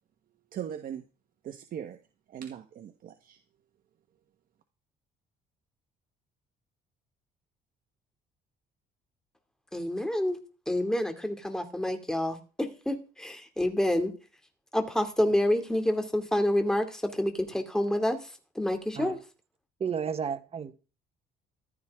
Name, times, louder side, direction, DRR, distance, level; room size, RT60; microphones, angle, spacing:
voice 1, 0.5-1.0 1.4-2.0 2.3-3.4, right 9 dB, 55° right, 1.4 m, -39 dB
voice 2, 9.7-10.4 10.7-14.1 14.7-18.2 18.5-19.2, left 1 dB, 5° left, 2.6 m, -28 dB
voice 3, 19.8-20.9, right 7 dB, 35° right, 1.4 m, -33 dB
15.0 x 12.5 x 3.7 m
cardioid pair, 110°, 17 cm